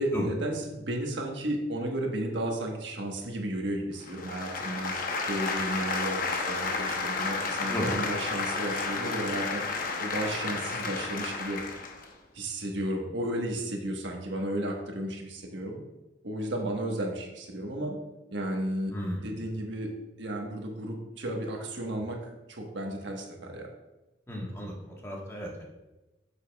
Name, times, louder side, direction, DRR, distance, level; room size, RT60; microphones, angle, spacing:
voice 1, 0.0-4.9 5.3-11.6 12.3-15.8 16.2-18.0 18.3-18.9 19.2-19.9 20.2-23.7, right 1 dB, 70° right, 1 dB, 1.3 m, -33 dB
sound 1, 4.0-12.1, left 4 dB, 45° left, 0.8 m, -32 dB
voice 2, 18.9-19.2 24.3-25.6, equal, 15° left, -2 dB, 1.3 m, -34 dB
8.6 x 7.2 x 2.3 m, 1.0 s
head